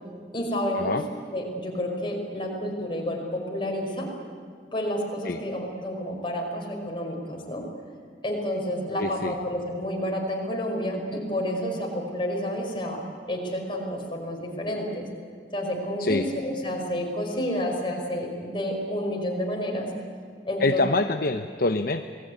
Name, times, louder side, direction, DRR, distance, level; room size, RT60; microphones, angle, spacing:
voice 1, 0.3-1.0 1.3-4.1 4.7-7.7 8.2-13.0 13.3-15.1 15.5-19.9 20.5-20.8, equal, 30° left, 0 dB, 5.5 m, -30 dB
voice 2, 9.0-9.3 16.0-16.3 20.6-22.0, left 3 dB, 55° left, 7 dB, 0.8 m, -25 dB
28.0 x 19.5 x 9.7 m, 2.1 s
head